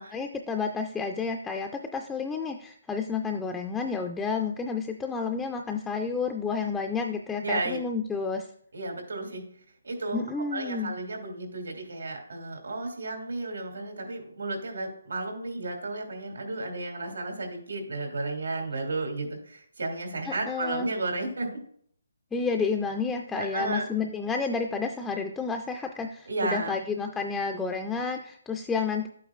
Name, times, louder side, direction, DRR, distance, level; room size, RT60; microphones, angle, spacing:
voice 1, 0.1-8.5 10.1-10.9 20.3-20.9 22.3-29.1, left 5 dB, 5° left, 3 dB, 0.3 m, -30 dB
voice 2, 7.4-7.8 8.7-9.5 9.8-10.2 10.5-21.6 23.4-23.9 26.3-26.8, right 2 dB, 85° right, 3 dB, 2.6 m, -33 dB
11.0 x 8.4 x 2.4 m, 0.64 s
hypercardioid pair, 175°, 0 cm